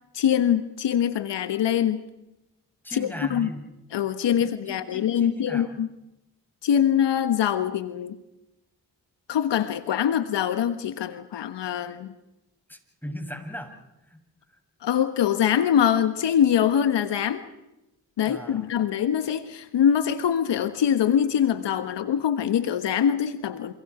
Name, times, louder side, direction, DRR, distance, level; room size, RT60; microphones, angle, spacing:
voice 1, 0.1-2.0 2.9-3.5 3.9-5.9 6.6-8.2 9.3-12.1 14.8-17.4 18.2-23.7, left 9 dB, 75° left, 11 dB, 1.3 m, -23 dB
voice 2, 2.8-3.7 4.4-5.8 12.7-13.8 14.0-14.2 18.2-18.7, equal, 5° left, 4 dB, 7.7 m, -38 dB
28.5 x 27.0 x 4.9 m, 0.94 s
supercardioid pair, 40°, 43 cm